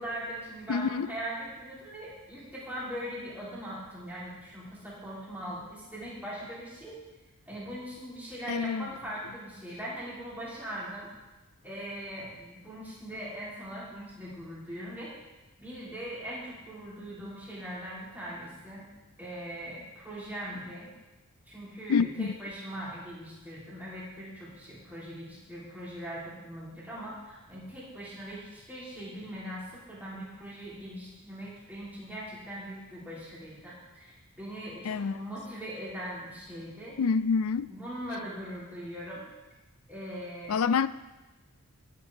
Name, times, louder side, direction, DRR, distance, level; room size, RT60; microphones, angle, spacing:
voice 1, 0.0-7.0 7.5-11.1 11.6-15.1 15.6-18.9 19.2-20.9 21.5-37.0 37.7-39.2 39.9-40.6, equal, 10° right, -8 dB, 3.7 m, -40 dB
voice 2, 0.7-1.1 8.5-8.9 21.9-22.3 34.8-35.2 37.0-37.7 40.5-40.9, left 5 dB, 75° left, 16 dB, 0.4 m, -27 dB
18.5 x 7.7 x 3.7 m, 1.1 s
head